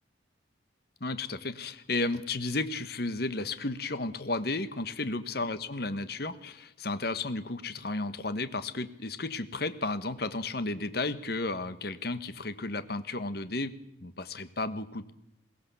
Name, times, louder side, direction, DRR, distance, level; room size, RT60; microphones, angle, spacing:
voice 1, 1.0-13.7 14.0-15.1, left 2 dB, 55° left, 12 dB, 1.2 m, -33 dB
22.0 x 17.0 x 7.0 m, 0.85 s
head